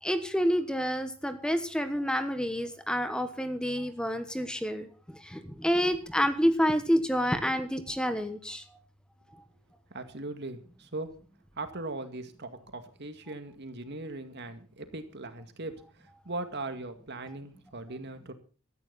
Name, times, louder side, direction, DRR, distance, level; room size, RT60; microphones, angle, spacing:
voice 1, 0.0-8.8, equal, 5° left, 9 dB, 1.3 m, -28 dB
voice 2, 9.9-11.1 11.6-18.3, right 2 dB, 55° right, 8 dB, 2.2 m, -39 dB
17.0 x 13.5 x 4.2 m, 0.37 s
head